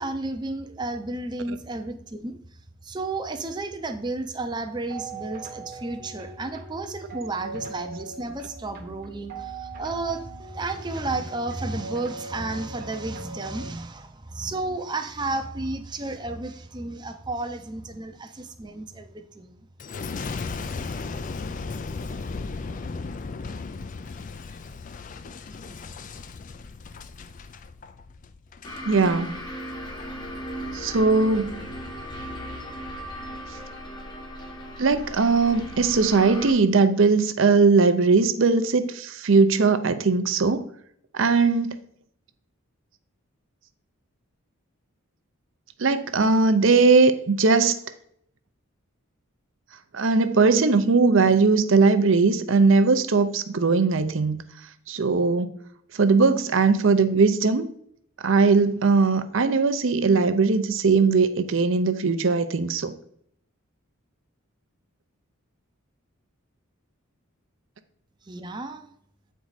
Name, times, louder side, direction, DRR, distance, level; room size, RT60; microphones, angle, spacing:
voice 1, 0.0-2.4 2.8-19.6 68.3-68.9, right 2 dB, 20° right, 0.6 m, -32 dB
sound 1, 4.9-13.7, right 3 dB, 45° right, 1.0 m, -40 dB
Boom, 19.8-29.1 29.7-30.1, left 4 dB, 35° left, 0.4 m, -36 dB
sound 2, 28.6-36.5, equal, 20° left, 0.9 m, -37 dB
voice 2, 28.8-29.3 30.7-31.6 34.8-40.6 41.1-41.8 45.8-47.8 49.9-54.4 54.9-55.5 56.0-57.7 58.2-62.9, right 4 dB, 60° right, 0.6 m, -20 dB
8.4 x 4.6 x 4.0 m
head